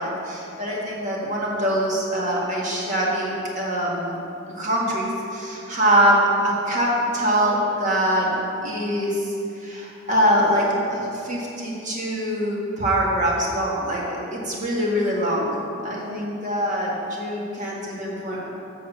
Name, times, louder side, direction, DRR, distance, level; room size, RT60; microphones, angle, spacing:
voice 1, 0.0-4.2 4.5-8.4 8.6-15.5 15.8-18.5, equal, 35° right, -4 dB, 1.7 m, -23 dB
7.7 x 6.1 x 7.1 m, 2.8 s
head